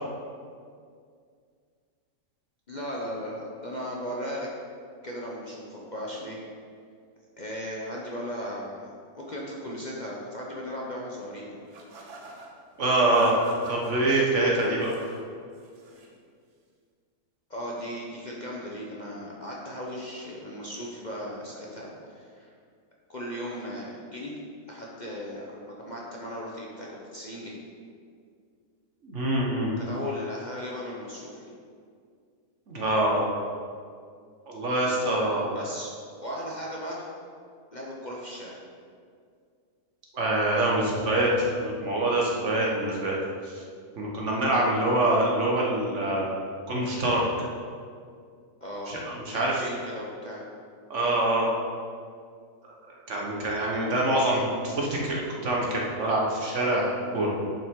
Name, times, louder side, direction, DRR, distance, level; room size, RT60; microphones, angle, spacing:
voice 1, 2.7-4.5 5.0-6.4 7.4-8.9 9.2-11.6 14.0-14.3 17.5-22.5 23.1-24.4 24.7-27.6 29.8-31.5 35.5-35.9 36.2-37.1 37.7-38.6 44.5-44.7 48.6-48.9 49.6-50.5, equal, 35° left, -4 dB, 0.8 m, -37 dB
sound 1, 11.7-12.5 13.1-13.9 14.6-15.2 15.5-16.1, right 3 dB, 75° right, 1.6 m, -43 dB
voice 2, 12.8-13.4 13.7-14.9 29.0-29.7 32.7-33.3 34.5-35.5 40.1-43.2 43.4-43.6 44.0-46.3 46.7-47.2 48.9-49.6 50.9-51.5 52.6-57.3, right 1 dB, 50° right, -3 dB, 1.6 m, -25 dB
10.5 x 5.6 x 3.7 m, 2.2 s
omnidirectional pair, 1.7 m